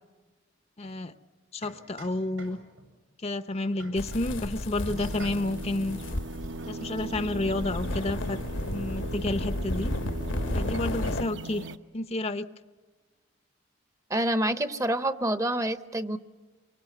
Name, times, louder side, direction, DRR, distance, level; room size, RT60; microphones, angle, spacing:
voice 1, 0.8-1.1 1.5-2.6 3.2-6.0 6.6-8.4 8.6-10.0 10.5-11.6 11.9-12.5, left 2 dB, 30° left, 12 dB, 0.7 m, -30 dB
sound 1, 0.8-1.0 1.6-2.9 3.8-4.7 5.1-5.7, right 3 dB, 85° right, 7.7 m, -48 dB
sound 2, 4.0-11.2, left 1 dB, 75° left, 1.3 m, -33 dB
sound 3, 4.9-11.8, right 2 dB, 65° right, 1.0 m, -39 dB
voice 2, 14.1-16.2, right 1 dB, 15° right, 12 dB, 0.8 m, -27 dB
25.5 x 24.0 x 8.1 m, 1.3 s
head